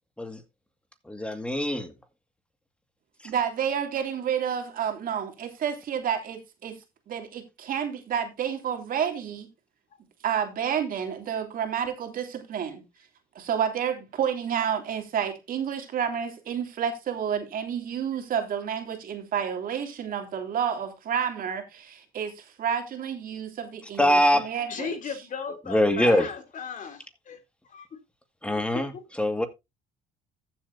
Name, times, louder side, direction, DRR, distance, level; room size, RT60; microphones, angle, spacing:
voice 1, 1.0-1.9 3.2-3.3 24.0-24.5 25.7-26.3 28.4-29.5, left 1 dB, 5° left, 2.1 m, -23 dB
voice 2, 3.2-6.8 7.1-9.5 10.2-12.8 13.3-24.9, right 8 dB, 60° right, 3.0 m, -30 dB
voice 3, 24.7-27.4 27.7-27.9 28.9-29.0, left 5 dB, 50° left, 3.2 m, -36 dB
14.5 x 7.6 x 2.7 m
cardioid pair, 95°, 17 cm